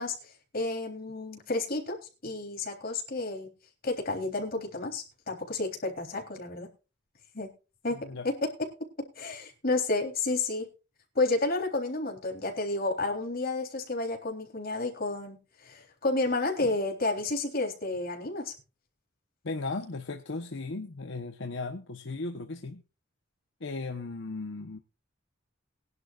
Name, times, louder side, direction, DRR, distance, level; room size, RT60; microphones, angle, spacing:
voice 1, 0.0-2.0 2.2-3.5 3.8-6.7 7.3-7.5 7.8-8.0 8.2-8.4 9.0-10.7 11.2-18.5, left 2 dB, 50° left, 3.6 m, -31 dB
voice 2, 7.9-8.3 19.4-22.8 23.6-24.8, left 3 dB, 70° left, 1.0 m, -36 dB
20.5 x 11.0 x 2.5 m
head